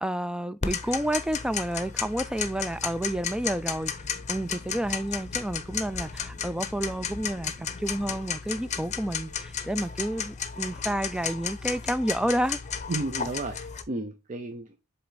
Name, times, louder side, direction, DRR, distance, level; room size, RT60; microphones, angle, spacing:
voice 1, 0.0-3.9 4.3-12.6, right 1 dB, 5° right, 0.4 m, -30 dB
Tick-tock, 0.6-13.8, left 7 dB, 35° left, 0.7 m, -34 dB
voice 2, 12.9-14.8, right 2 dB, 35° right, 0.7 m, -33 dB
7.7 x 3.4 x 4.0 m
head